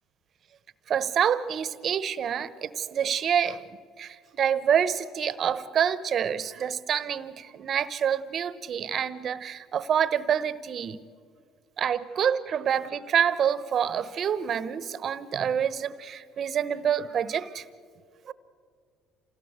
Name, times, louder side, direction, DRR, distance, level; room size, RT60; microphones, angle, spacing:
voice 1, 0.9-11.0 11.8-17.6 18.3-18.4, right 8 dB, 50° right, 17 dB, 1.0 m, -27 dB
27.0 x 17.0 x 8.1 m, 2.2 s
supercardioid pair, 70°, 0 cm